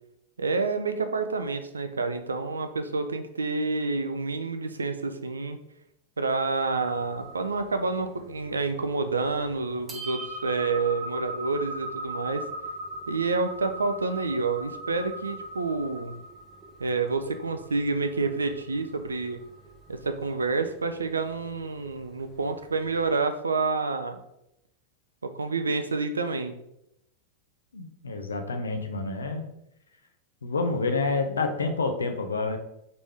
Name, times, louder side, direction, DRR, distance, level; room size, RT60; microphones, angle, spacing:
voice 1, 0.4-5.6 6.2-12.5 13.1-16.2 16.8-19.4 19.9-24.2 25.2-26.6, right 3 dB, 75° right, 9 dB, 0.4 m, -28 dB
sound 1, 6.8-23.2, right 2 dB, 15° right, 0.7 m, -40 dB
voice 2, 27.7-29.4 30.4-32.6, left 3 dB, 70° left, 6 dB, 0.6 m, -28 dB
3.9 x 3.2 x 3.5 m, 0.81 s
figure-of-eight pair, 90°, 0 cm